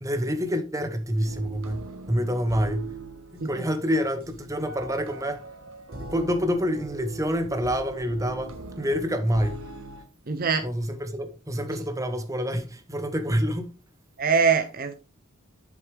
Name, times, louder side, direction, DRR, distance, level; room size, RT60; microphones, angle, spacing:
voice 1, 0.0-2.9 3.3-5.5 5.9-9.6 10.6-13.7, equal, 15° right, 1.1 m, -27 dB
sound 1, 1.2-10.0, right 2 dB, 85° right, 1.6 m, -40 dB
voice 2, 10.3-10.7 14.2-14.9, right 5 dB, 45° right, 0.7 m, -23 dB
7.8 x 7.2 x 3.4 m
head